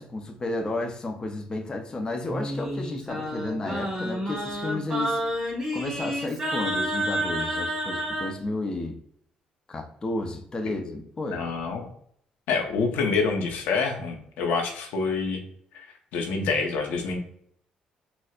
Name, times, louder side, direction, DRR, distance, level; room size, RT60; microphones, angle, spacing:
voice 1, 0.0-5.2 5.7-9.0 9.7-11.5, left 2 dB, 30° left, 0.6 m, -32 dB
Singing, 2.3-8.3, equal, 15° right, 1.4 m, -29 dB
voice 2, 11.3-11.8 12.5-15.4 15.7-15.9 16.1-17.2, left 4 dB, 85° left, 0.7 m, -27 dB
4.3 x 2.1 x 2.3 m
cardioid pair, 100°, 3 cm